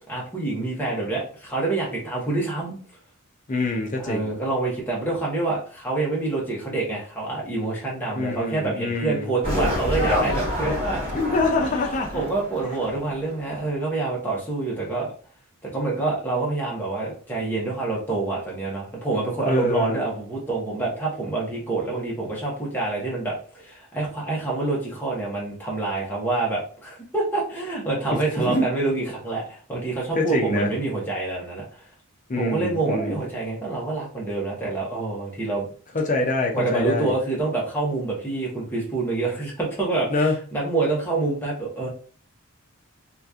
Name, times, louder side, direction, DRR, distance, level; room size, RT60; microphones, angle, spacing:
voice 1, 0.1-2.8 4.0-11.0 12.1-15.1 15.6-31.9 32.4-35.7 36.5-41.9, right 3 dB, 10° left, -4 dB, 0.9 m, -27 dB
voice 2, 3.5-4.3 8.1-9.3 11.1-12.2 19.5-20.0 28.4-28.6 30.2-30.7 32.3-33.2 35.9-37.2 40.1-40.4, left 2 dB, 35° left, 2 dB, 0.6 m, -25 dB
sound 1, 9.4-13.3 13.6-13.7, left 1 dB, 25° right, 1.3 m, -27 dB
2.9 x 2.4 x 3.5 m, 0.42 s
head